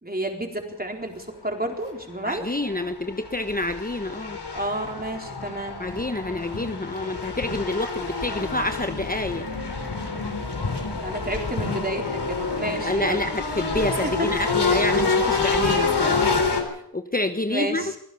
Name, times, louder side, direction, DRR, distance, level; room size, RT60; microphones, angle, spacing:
voice 1, 0.0-2.6 4.5-5.8 10.9-13.2 13.6-13.7 14.0-14.3 17.5-17.9, right 1 dB, 20° right, 3 dB, 4.1 m, -31 dB
sound 1, 1.9-2.0 2.5-16.6, left 4 dB, 70° left, 4.1 m, -27 dB
voice 2, 2.2-4.4 5.8-9.4 12.8-16.3 16.6-17.8, left 2 dB, 20° left, 8 dB, 1.1 m, -28 dB
24.5 x 16.0 x 7.0 m, 0.72 s
wide cardioid pair, 80°, 41 cm